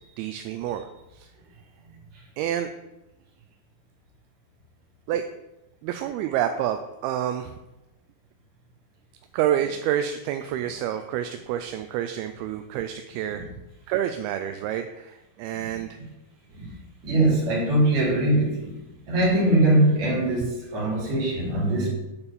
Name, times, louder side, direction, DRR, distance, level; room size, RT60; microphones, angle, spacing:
voice 1, 0.2-0.9 1.1-1.3 2.4-2.7 5.1-5.3 5.8-7.5 9.3-13.5 13.9-16.0, right 10 dB, 85° right, 7 dB, 2.4 m, -28 dB
voice 2, 17.0-18.8 19.1-21.9, right 1 dB, 50° right, -3 dB, 3.6 m, -22 dB
8.8 x 4.3 x 6.8 m, 0.98 s
omnidirectional pair, 4.5 m